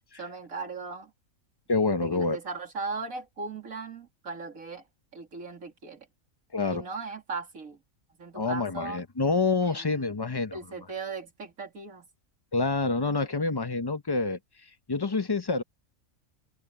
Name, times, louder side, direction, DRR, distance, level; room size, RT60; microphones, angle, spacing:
voice 1, 0.2-1.1 2.0-4.9 5.1-6.1 6.7-7.8 8.2-9.0 9.6-10.1 10.5-12.1, right 4 dB, 90° right, 3.1 m, -38 dB
voice 2, 1.7-2.4 6.5-6.8 8.3-10.6 12.5-15.6, left 3 dB, 20° left, 0.8 m, -27 dB
open air
omnidirectional pair, 1.4 m